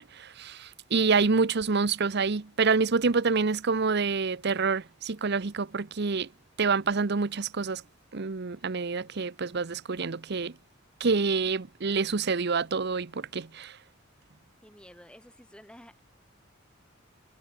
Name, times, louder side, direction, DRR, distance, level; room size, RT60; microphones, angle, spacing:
voice 1, 0.0-6.3 6.6-7.8 8.1-10.5 11.0-13.7, right 4 dB, 55° right, 0.8 m, -27 dB
voice 2, 14.6-16.0, equal, 5° left, 5.1 m, -51 dB
head